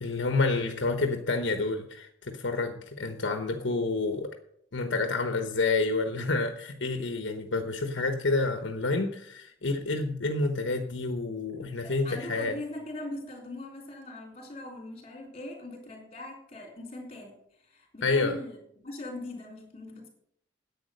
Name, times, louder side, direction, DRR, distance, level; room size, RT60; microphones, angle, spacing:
voice 1, 0.0-4.3 4.7-12.5 18.0-18.4, left 3 dB, 70° left, 6 dB, 1.0 m, -29 dB
voice 2, 11.7-20.1, left 1 dB, 35° left, 0 dB, 3.8 m, -41 dB
10.5 x 8.4 x 6.5 m, 0.71 s
head